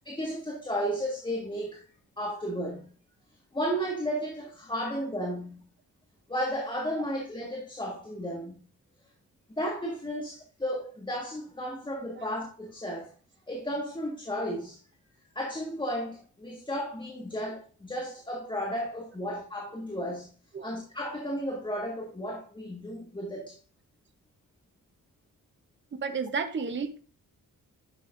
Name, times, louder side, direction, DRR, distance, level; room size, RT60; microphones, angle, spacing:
voice 1, 0.1-1.8 2.2-2.9 3.5-5.6 6.3-8.6 9.6-13.1 13.5-14.8 15.4-20.3 20.6-23.5, equal, 15° left, 1.8 m, -33 dB
voice 2, 26.0-27.0, right 5 dB, 35° right, 0.9 m, -32 dB
10.5 x 6.8 x 2.6 m
wide cardioid pair, 125°, 33 cm